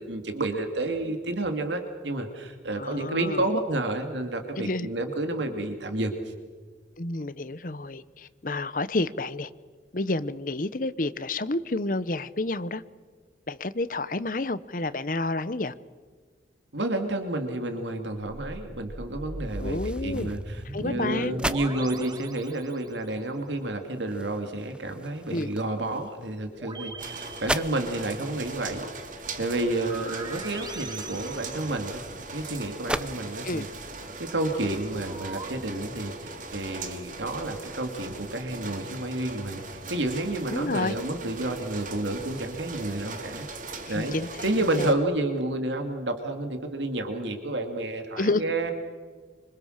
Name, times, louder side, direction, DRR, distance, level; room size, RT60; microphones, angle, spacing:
voice 1, 0.0-6.1 16.7-28.9 29.4-32.0 32.3-33.7 34.2-43.5 43.9-44.2 44.4-48.7, right 2 dB, 85° right, 2.6 m, -30 dB
voice 2, 2.7-3.4 4.6-4.9 7.0-9.5 9.9-12.8 13.5-15.7 19.6-20.4 20.7-21.3 25.3-25.5 33.4-33.7 40.5-41.0 43.9-44.3 44.8-44.9 48.2-48.4, left 2 dB, 50° left, 0.9 m, -29 dB
sound 1, 18.7-23.2 26.5-28.3 29.7-32.3 35.0-35.5, right 1 dB, 20° right, 1.7 m, -40 dB
sound 2, 19.5-33.1, right 1 dB, 5° right, 0.6 m, -39 dB
sound 3, 27.0-44.9, right 3 dB, 45° right, 2.5 m, -40 dB
26.0 x 25.5 x 6.6 m
head